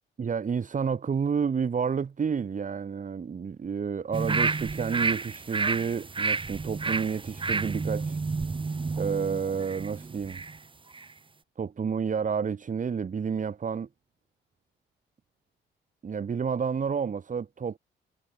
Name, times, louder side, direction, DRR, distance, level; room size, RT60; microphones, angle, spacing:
voice 1, 0.2-8.2 9.0-10.4 11.6-13.9 16.0-17.8, right 6 dB, 40° right, 2.6 m, -30 dB
sound 1, 4.1-10.6 10.9-11.1, right 4 dB, 25° right, 2.1 m, -30 dB
cardioid pair, 90°, 20 cm